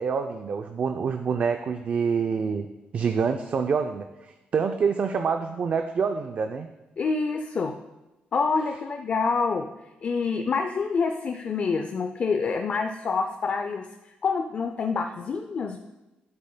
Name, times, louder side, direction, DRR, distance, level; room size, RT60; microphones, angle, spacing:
voice 1, 0.0-2.7 2.9-6.7, right 6 dB, 45° right, 6 dB, 0.4 m, -26 dB
voice 2, 7.0-7.7 8.3-9.7 10.0-13.9 14.2-15.8, left 4 dB, 45° left, 5 dB, 0.4 m, -27 dB
9.4 x 7.7 x 2.2 m, 1.1 s
cardioid pair, 130°, 3 cm